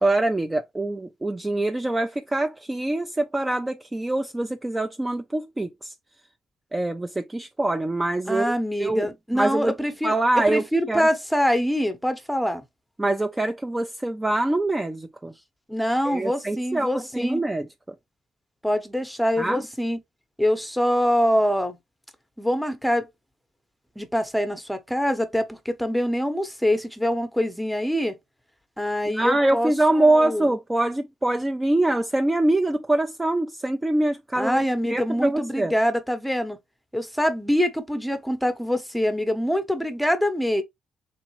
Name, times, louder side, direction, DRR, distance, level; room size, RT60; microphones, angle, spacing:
voice 1, 0.0-5.9 6.7-8.5 8.8-9.7 10.0-11.1 13.0-15.3 16.1-17.7 19.4-19.6 29.1-34.6 34.9-35.7, right 2 dB, 15° right, 0.4 m, -24 dB
voice 2, 8.3-12.6 15.7-17.4 18.6-20.0 20.4-21.8 22.4-23.1 24.0-28.2 28.8-29.7 30.0-30.5 34.4-36.6 36.9-40.6, equal, ahead, 0.8 m, -24 dB
3.6 x 3.1 x 3.1 m
cardioid pair, 90°, 0 cm